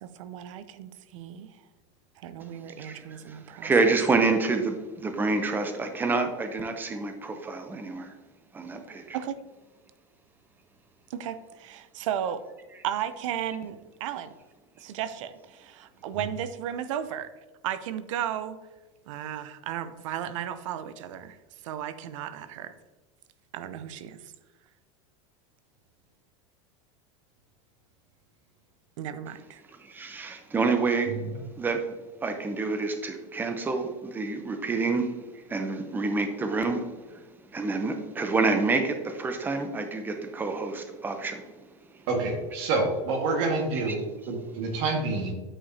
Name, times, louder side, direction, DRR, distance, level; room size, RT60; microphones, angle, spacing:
voice 1, 0.0-1.5 2.2-3.7 9.1-9.4 11.1-12.4 12.8-14.3 14.8-17.3 17.6-18.6 19.1-21.4 21.6-22.8 23.5-24.2 29.0-29.6, right 10 dB, 80° right, 13 dB, 0.5 m, -34 dB
voice 2, 2.8-8.1 8.5-9.2 29.8-31.9 32.2-37.2 37.5-41.5 43.7-44.0, right 3 dB, 10° right, 6 dB, 0.6 m, -28 dB
voice 3, 31.1-31.4 42.1-45.3, right 3 dB, 60° right, 2 dB, 1.6 m, -28 dB
8.7 x 4.8 x 2.7 m, 1.2 s
supercardioid pair, 155°, 16 cm